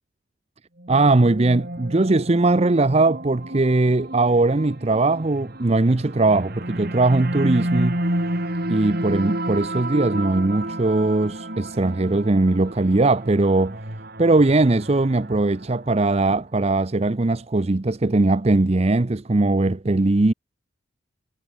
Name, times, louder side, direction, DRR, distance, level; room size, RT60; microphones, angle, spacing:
sound 1, 0.8-16.1, right 1 dB, 50° right, 4.7 m, -31 dB
voice 1, 0.9-8.0 8.7-13.8 14.2-20.3, right 2 dB, 30° right, 0.6 m, -20 dB
head